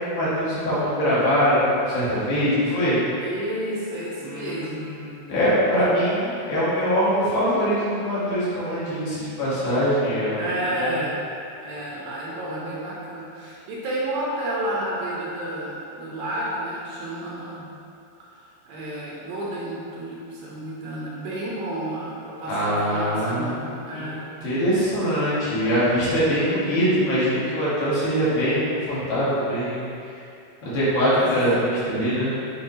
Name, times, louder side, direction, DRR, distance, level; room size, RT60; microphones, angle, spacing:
voice 1, 0.0-3.0 4.2-11.0 22.5-23.7 23.9-24.1 24.4-29.9 30.6-32.3, equal, 70° left, -10 dB, 3.3 m, -23 dB
voice 2, 3.2-5.0 5.7-5.9 10.4-11.2 11.6-17.7 18.3-24.3 26.4-26.6 31.1-31.4, right 1 dB, 75° right, -6 dB, 2.5 m, -31 dB
8.1 x 4.5 x 2.7 m, 2.5 s
omnidirectional pair, 4.6 m